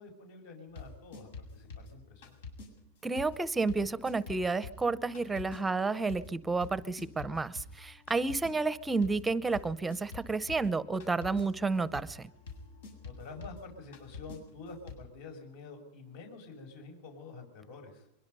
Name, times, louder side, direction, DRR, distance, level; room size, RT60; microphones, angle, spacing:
voice 1, 0.0-2.3 13.0-18.1, left 4 dB, 65° left, 3 dB, 6.3 m, -48 dB
sound 1, 0.7-2.7 3.2-14.9, left 4 dB, 85° left, 7.6 m, -48 dB
voice 2, 3.0-12.3, right 3 dB, 10° right, 15 dB, 0.7 m, -31 dB
23.5 x 22.0 x 5.5 m, 0.78 s
supercardioid pair, 160°, 0 cm